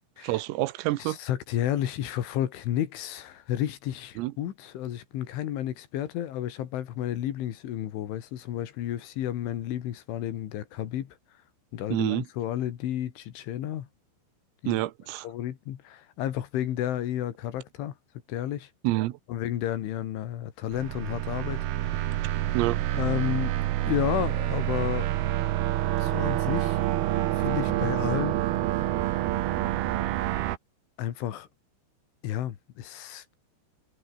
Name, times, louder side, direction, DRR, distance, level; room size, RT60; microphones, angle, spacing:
voice 1, 0.2-1.2 4.2-4.3 11.9-12.3 14.7-15.3 18.8-19.2 22.5-22.8, right 18 dB, 90° right, 3.7 m, -27 dB
voice 2, 1.0-11.2 11.7-13.9 14.6-14.8 15.2-18.0 18.3-18.7 19.3-22.3 22.9-23.5 23.8-25.1 26.0-26.9 27.3-28.4 31.0-31.5 32.2-33.4, left 12 dB, 70° left, 4.3 m, -32 dB
sound 1, 20.7-30.6, right 14 dB, 75° right, 2.4 m, -27 dB
omnidirectional pair, 6.0 m